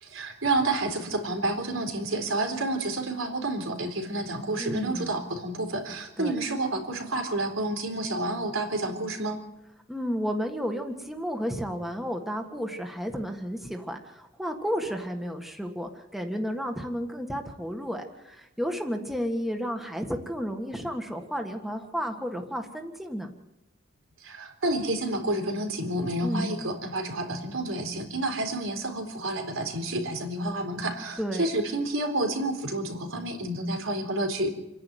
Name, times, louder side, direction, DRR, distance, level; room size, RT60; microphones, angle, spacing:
voice 1, 0.0-9.4 24.2-34.5, right 2 dB, 85° right, 5 dB, 3.9 m, -29 dB
voice 2, 4.6-5.3 6.2-6.3 9.9-23.3 26.2-26.8 31.2-31.5, equal, ahead, 3 dB, 1.6 m, -32 dB
28.5 x 11.0 x 9.3 m, 0.95 s
head